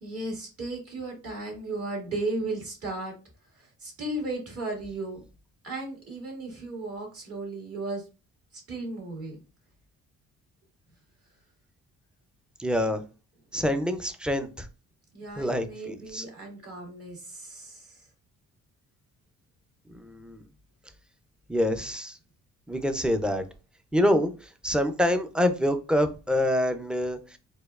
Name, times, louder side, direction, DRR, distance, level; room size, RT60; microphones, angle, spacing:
voice 1, 0.0-3.1 3.5-5.2 5.6-8.0 8.5-9.4 15.1-18.1, right 2 dB, 50° right, 1.7 m, -35 dB
voice 2, 12.6-13.0 13.5-14.7 15.4-16.2 19.9-20.4 21.5-22.2 22.7-23.4 23.9-27.4, equal, 5° right, 0.4 m, -26 dB
4.2 x 2.3 x 2.3 m
cardioid pair, 90°, 30 cm